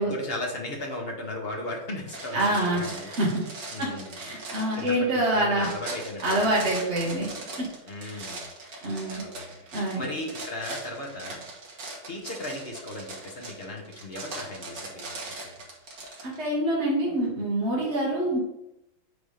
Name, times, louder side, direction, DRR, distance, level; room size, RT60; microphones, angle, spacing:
voice 1, 0.0-3.1 3.7-4.2 4.7-6.5 7.9-8.4 9.1-9.6 9.9-11.4 12.1-15.1 15.4-15.5, left 2 dB, 35° left, 1 dB, 1.1 m, -36 dB
sound 1, 2.1-16.5, right 2 dB, 60° right, 2.0 m, -40 dB
voice 2, 2.3-3.4 3.8-5.7 6.2-7.3 8.1-8.3 8.8-9.2 9.7-10.0 16.2-18.4, right 1 dB, 35° right, -6 dB, 1.7 m, -26 dB
8.3 x 3.6 x 5.0 m, 0.87 s
omnidirectional pair, 2.3 m